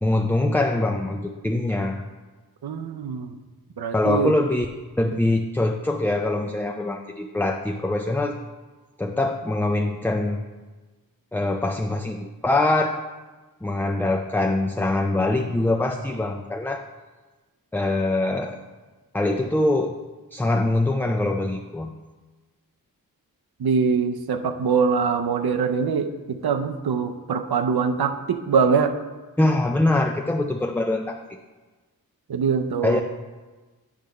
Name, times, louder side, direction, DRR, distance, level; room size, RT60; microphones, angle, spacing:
voice 1, 0.0-2.0 3.9-4.7 5.0-8.4 9.0-10.4 11.3-13.0 13.6-16.8 17.7-18.6 19.1-20.0 20.3-22.0 29.4-31.4 32.8-33.0, left 2 dB, 5° left, 3 dB, 0.3 m, -23 dB
voice 2, 2.6-3.3 3.8-4.3 23.6-28.9 32.3-33.0, right 5 dB, 85° right, 7 dB, 0.6 m, -23 dB
8.6 x 3.4 x 6.3 m, 1.3 s
wide cardioid pair, 80°, 36 cm